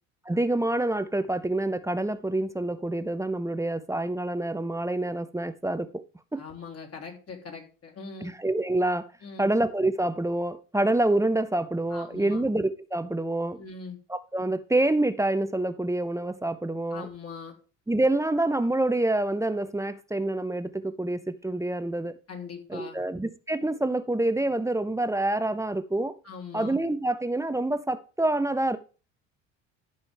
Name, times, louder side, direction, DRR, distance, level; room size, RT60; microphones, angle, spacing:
voice 1, 0.3-6.0 6.3-6.4 8.2-9.1 9.4-13.6 14.1-17.1 17.9-22.1 22.7-26.2 26.5-28.8, right 2 dB, 10° right, 0.7 m, -27 dB
voice 2, 6.4-8.3 9.2-9.5 11.9-12.4 13.5-14.0 16.9-17.5 22.3-23.0 26.2-26.7, left 5 dB, 40° left, 3.1 m, -41 dB
13.5 x 5.5 x 3.4 m
hypercardioid pair, 65°, 37 cm